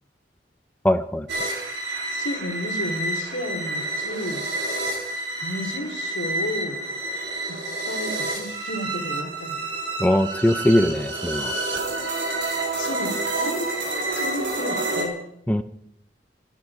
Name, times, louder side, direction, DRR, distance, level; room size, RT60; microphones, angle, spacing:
voice 1, 0.8-1.3 10.0-11.5 15.5-15.6, left 1 dB, 10° left, 10 dB, 0.6 m, -20 dB
sound 1, 1.3-15.0, right 2 dB, 80° right, 3.9 m, -29 dB
voice 2, 2.1-4.4 5.4-6.8 7.5-7.6 7.9-9.6 12.7-13.7 14.1-15.2, left 1 dB, 90° left, 5 dB, 3.2 m, -32 dB
26.5 x 10.5 x 4.8 m, 0.76 s
head